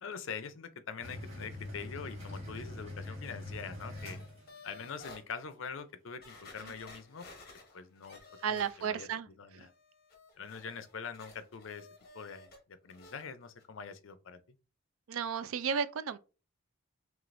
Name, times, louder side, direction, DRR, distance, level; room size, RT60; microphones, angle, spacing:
voice 1, 0.0-4.2 4.6-7.3 7.7-8.2 8.5-9.1 9.4-9.7 10.4-11.9 12.1-14.4, left 6 dB, 65° left, 0.5 m, -44 dB
sound 1, 1.0-4.8, left 1 dB, 30° right, 1.7 m, -43 dB
sound 2, 4.0-5.2 5.8-5.9 6.2-9.2 9.5-12.6 12.9-13.2 13.6-13.7, left 3 dB, 45° left, 1.0 m, -54 dB
voice 2, 8.4-9.3 9.5-9.7 15.1-16.2, right 7 dB, 75° right, 0.4 m, -33 dB
4.9 x 3.2 x 2.5 m
head